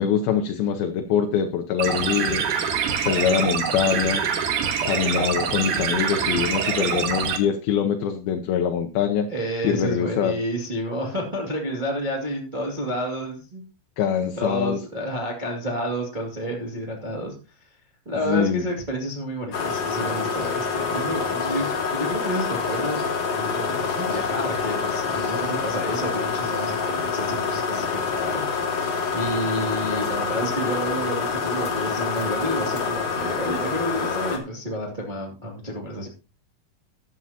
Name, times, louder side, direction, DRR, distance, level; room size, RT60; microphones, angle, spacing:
voice 1, 0.0-2.7 3.0-4.2 4.8-9.3 9.6-10.3 14.0-14.8 18.2-18.6, left 8 dB, 75° left, 6 dB, 2.6 m, -24 dB
sound 1, 1.8-7.4, right 7 dB, 65° right, 2.6 m, -25 dB
voice 2, 9.3-13.6 14.4-17.6 18.1-21.6 21.9-23.0 23.3-36.1, equal, 15° right, -1 dB, 1.8 m, -30 dB
sound 2, 19.5-34.4, left 5 dB, 45° left, 2.9 m, -26 dB
13.5 x 11.5 x 2.9 m, 0.34 s
omnidirectional pair, 4.5 m